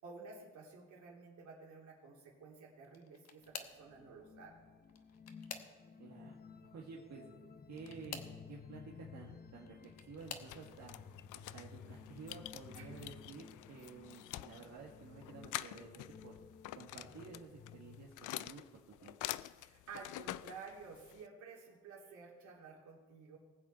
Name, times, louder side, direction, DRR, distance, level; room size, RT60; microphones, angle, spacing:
voice 1, 0.0-4.6 12.7-12.9 19.6-23.4, right 4 dB, 75° right, -2 dB, 3.2 m, -53 dB
sound 1, 2.8-3.9 4.8-6.1 7.7-8.4 9.5-10.6 11.3-11.7 12.1-12.2 13.6-13.7, left 6 dB, 60° left, 1.2 m, -49 dB
sound 2, 3.4-18.1, left 6 dB, 30° left, 0.9 m, -55 dB
voice 2, 6.0-6.4 6.6-7.3 7.7-8.2 8.5-11.0 11.3-15.9 16.2-16.3 16.8-18.6 19.0-19.2, right 5 dB, 60° right, -3 dB, 1.9 m, -52 dB
sound 3, 10.2-21.3, left 15 dB, 80° left, 0.5 m, -47 dB
19.5 x 7.4 x 4.3 m, 1.4 s
cardioid pair, 90°, 30 cm